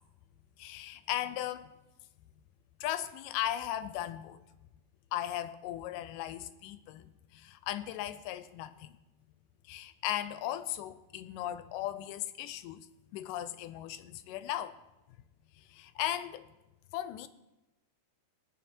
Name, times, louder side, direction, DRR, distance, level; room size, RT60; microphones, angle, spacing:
voice 1, 0.6-1.7 2.8-4.4 5.1-9.0 9.6-12.9 13.1-14.8 15.6-16.5 16.9-17.3, left 12 dB, 90° left, 12 dB, 2.2 m, -37 dB
19.5 x 6.5 x 4.4 m, 0.99 s
omnidirectional pair, 3.8 m